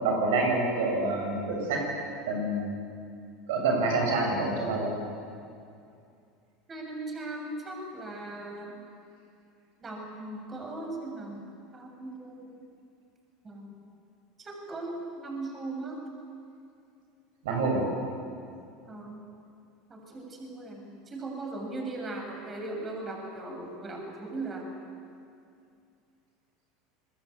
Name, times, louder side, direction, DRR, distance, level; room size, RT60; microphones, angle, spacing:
voice 1, 0.0-1.8 2.3-2.7 3.5-4.9 17.4-17.9, right 3 dB, 75° right, 0 dB, 7.3 m, -27 dB
voice 2, 6.7-8.8 9.8-11.5 11.7-12.5 13.4-13.8 14.4-16.0 18.9-19.2 19.9-24.7, right 2 dB, 30° right, 1 dB, 7.2 m, -38 dB
27.5 x 21.5 x 8.7 m, 2.5 s
hypercardioid pair, 90°, 0 cm